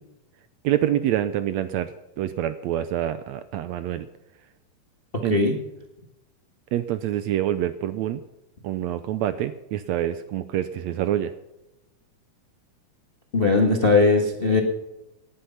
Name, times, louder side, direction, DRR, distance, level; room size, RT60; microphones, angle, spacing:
voice 1, 0.6-4.1 5.2-5.4 6.7-8.2 8.6-11.3, right 12 dB, 75° right, 12 dB, 1.7 m, -26 dB
voice 2, 13.3-14.6, left 3 dB, 30° left, 3 dB, 1.1 m, -19 dB
18.5 x 10.0 x 5.8 m, 0.95 s
omnidirectional pair, 3.6 m